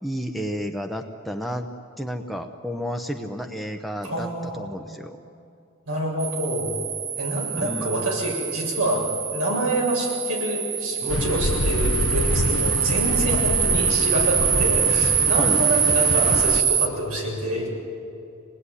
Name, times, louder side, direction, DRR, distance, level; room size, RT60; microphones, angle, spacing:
voice 1, 0.0-1.7 2.0-4.3 4.5-5.2 7.6-8.1 15.4-15.6, equal, ahead, 3 dB, 0.8 m, -31 dB
voice 2, 4.0-4.7 5.9-6.7 7.2-17.7, right 1 dB, 90° right, -2 dB, 7.5 m, -27 dB
sound 1, 6.2-16.9, right 7 dB, 50° right, 1.4 m, -24 dB
sound 2, 11.1-16.6, left 2 dB, 85° left, 1.1 m, -27 dB
26.0 x 19.0 x 9.9 m, 2.5 s
head